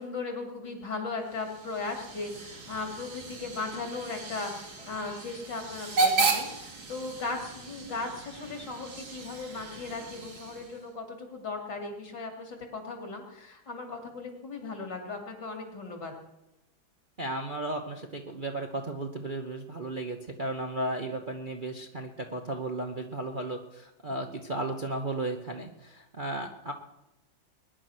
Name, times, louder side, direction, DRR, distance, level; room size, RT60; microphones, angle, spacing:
voice 1, 0.0-16.1, left 3 dB, 60° left, 3 dB, 3.5 m, -37 dB
Hiss / Train / Alarm, 1.2-10.9, right 3 dB, 80° right, 3.3 m, -34 dB
voice 2, 17.2-26.7, right 2 dB, 35° right, 2 dB, 1.0 m, -34 dB
21.0 x 10.5 x 6.2 m, 0.91 s
omnidirectional pair, 2.1 m